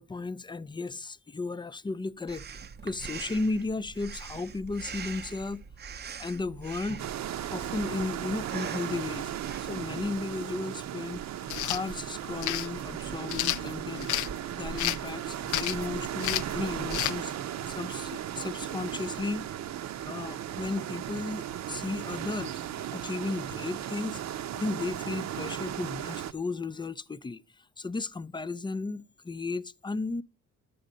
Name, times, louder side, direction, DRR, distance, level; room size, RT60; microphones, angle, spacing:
voice 1, 0.0-2.4 2.8-5.9 6.2-7.0 7.5-9.3 9.6-11.3 11.6-14.1 14.6-17.4 17.7-19.5 20.0-22.6 22.9-24.2 24.5-30.2, left 3 dB, 15° left, 0.5 m, -34 dB
Breathing, 2.3-9.9, right 6 dB, 35° right, 0.6 m, -43 dB
sound 1, 7.0-26.3, right 10 dB, 65° right, 0.8 m, -36 dB
sound 2, 11.4-11.8 12.4-12.7 13.3-14.3 14.8-15.1 15.5-15.9 16.2-16.5 16.9-17.2, left 15 dB, 75° left, 0.5 m, -30 dB
11.5 x 8.5 x 5.1 m
cardioid pair, 90°, 30 cm